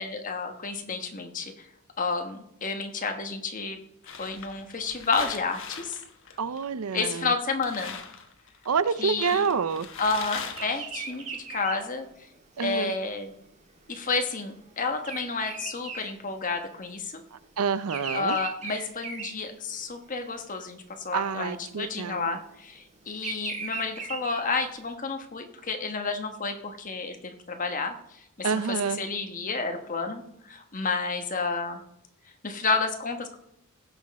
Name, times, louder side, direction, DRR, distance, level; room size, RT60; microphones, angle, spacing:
voice 1, 0.0-1.7 2.0-3.8 4.2-6.0 6.9-7.9 9.0-9.5 10.0-12.1 12.6-13.3 13.9-17.2 18.1-31.8 32.4-33.4, left 4 dB, 35° left, 5 dB, 1.2 m, -31 dB
sound 1, 4.1-6.9 7.3-7.4 7.6-11.2, left 6 dB, 60° left, 1.3 m, -40 dB
voice 2, 6.4-7.3 8.7-9.9 12.6-12.9 17.6-18.4 21.1-22.4 28.4-29.0, right 6 dB, 75° right, 15 dB, 0.5 m, -27 dB
Bird vocalization bird call bird song, 10.5-16.9 17.2-20.1 20.6-20.9 21.9-24.9, right 5 dB, 30° right, 1.6 m, -39 dB
16.5 x 6.4 x 4.1 m, 0.79 s
head